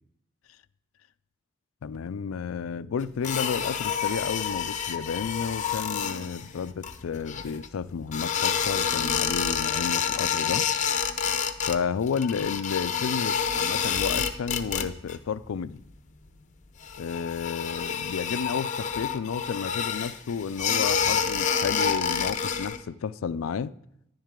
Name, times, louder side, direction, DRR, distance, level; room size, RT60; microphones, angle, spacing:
voice 1, 1.8-10.7 11.7-15.8 17.0-23.7, left 6 dB, 75° left, 0.4 m, -32 dB
sound 1, 3.2-7.7 8.1-11.8 12.0-15.2 15.4-15.9 16.2-16.3 16.8-22.8, left 7 dB, 35° left, 0.7 m, -28 dB
10.5 x 10.5 x 3.7 m
head